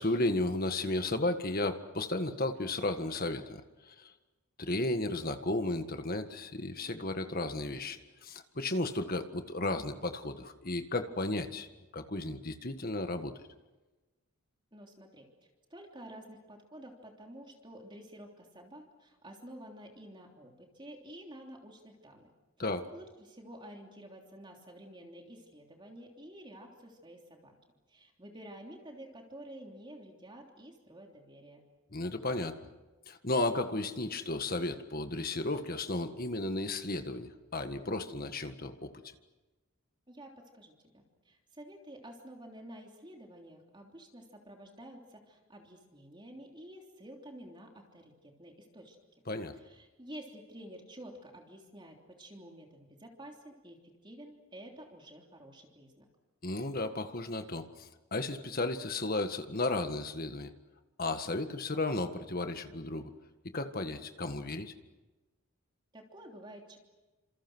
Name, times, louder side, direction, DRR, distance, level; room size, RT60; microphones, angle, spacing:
voice 1, 0.0-4.1 4.6-11.7 11.9-13.3 22.6-22.9 31.9-32.6 33.1-38.9 49.3-49.5 56.4-60.5 61.0-63.1 63.5-64.7, left 2 dB, 40° left, 7 dB, 1.7 m, -34 dB
voice 2, 14.7-15.3 15.7-22.3 22.9-27.5 27.9-31.6 40.1-49.0 49.6-56.1 65.9-66.8, right 1 dB, 20° right, 1 dB, 3.3 m, -50 dB
29.0 x 27.5 x 6.3 m, 1.2 s
head